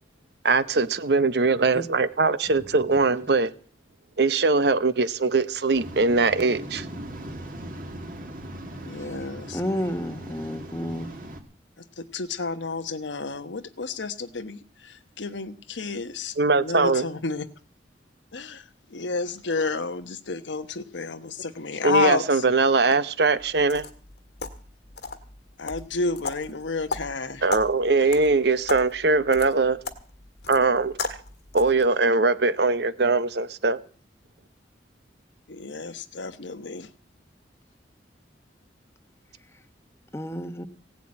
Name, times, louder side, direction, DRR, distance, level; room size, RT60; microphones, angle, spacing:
voice 1, 0.4-3.5 4.2-6.9 16.4-17.0 21.8-23.9 27.4-29.8 30.5-31.0 31.5-33.8, right 3 dB, 65° right, 0.8 m, -21 dB
Waves surf, 5.7-11.4, right 1 dB, 50° right, 2.2 m, -39 dB
voice 2, 8.8-9.6 11.8-17.5 18.3-18.6 18.9-22.4 25.6-27.5 35.5-36.9, left 4 dB, 85° left, 1.1 m, -30 dB
voice 3, 9.5-11.1 40.1-40.7, equal, 15° left, 1.0 m, -31 dB
sound 1, 23.4-31.9, left 4 dB, 65° left, 1.7 m, -37 dB
17.0 x 7.6 x 8.8 m
head